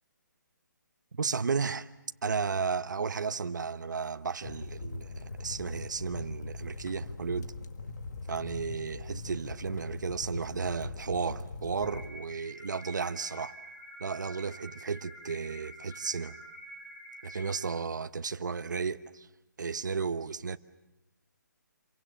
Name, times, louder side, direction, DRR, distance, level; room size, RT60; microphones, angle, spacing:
voice 1, 1.1-1.9 2.2-7.5 8.3-13.5 14.0-16.3 17.2-19.3 19.6-20.6, right 5 dB, 70° right, 1.0 m, -33 dB
sound 1, 4.4-12.1, left 3 dB, 65° left, 1.9 m, -41 dB
sound 2, 11.8-17.6, equal, 10° left, 7.4 m, -48 dB
27.5 x 23.5 x 8.7 m
hypercardioid pair, 180°, 10 cm